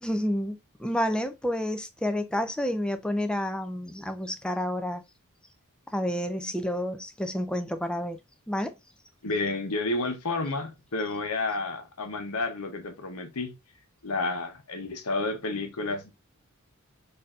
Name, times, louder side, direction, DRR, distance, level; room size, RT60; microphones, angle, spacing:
voice 1, 0.0-5.0 5.9-8.2 8.5-8.7, equal, 5° left, 0.4 m, -29 dB
voice 2, 9.2-13.5 14.0-16.1, left 3 dB, 75° left, 0.9 m, -30 dB
4.3 x 2.7 x 2.4 m
head